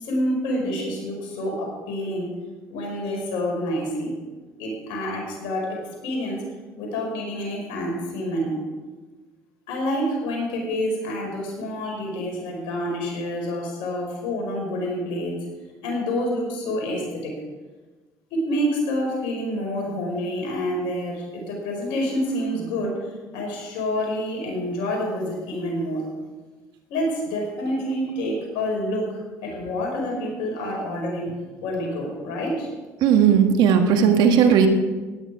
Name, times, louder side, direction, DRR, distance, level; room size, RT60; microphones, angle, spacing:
voice 1, 0.0-2.3 2.7-4.2 4.6-6.4 6.8-8.6 9.7-15.4 15.8-17.3 18.3-23.0 23.3-26.1 26.9-31.3 31.6-32.7, equal, 80° left, 0 dB, 4.9 m, -27 dB
voice 2, 33.0-34.7, right 7 dB, 70° right, 6 dB, 1.6 m, -16 dB
17.0 x 10.0 x 4.8 m, 1.2 s
supercardioid pair, 70°, 8 cm